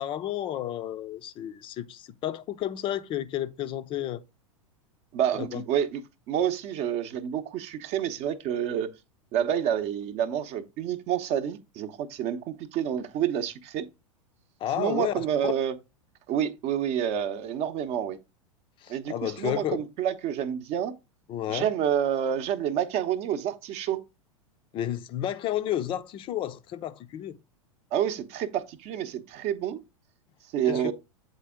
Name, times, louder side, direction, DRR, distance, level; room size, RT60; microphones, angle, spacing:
voice 1, 0.0-4.2 5.4-5.6 14.6-15.2 18.8-19.8 21.3-21.7 24.7-27.4 30.7-30.9, left 11 dB, 30° left, 0.5 m, -31 dB
voice 2, 5.1-6.0 6.3-8.9 9.3-13.9 14.8-15.7 16.3-18.2 18.9-20.9 21.5-24.0 27.9-29.8 30.5-30.9, right 9 dB, 35° right, 0.8 m, -28 dB
8.1 x 4.2 x 3.5 m
figure-of-eight pair, 90°, 18 cm